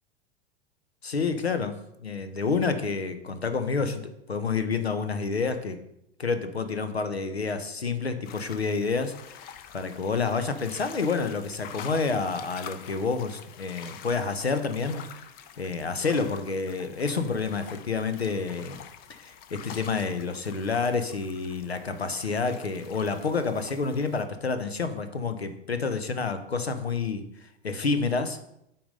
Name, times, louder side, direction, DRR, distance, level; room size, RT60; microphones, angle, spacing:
voice 1, 1.0-5.8 6.2-9.4 9.7-15.2 15.6-18.8 19.1-28.4, left 4 dB, 85° left, 10 dB, 0.8 m, -29 dB
sound 1, 8.2-24.2, left 9 dB, 30° left, 0.5 m, -47 dB
8.5 x 4.0 x 5.3 m, 0.79 s
figure-of-eight pair, 90°, 31 cm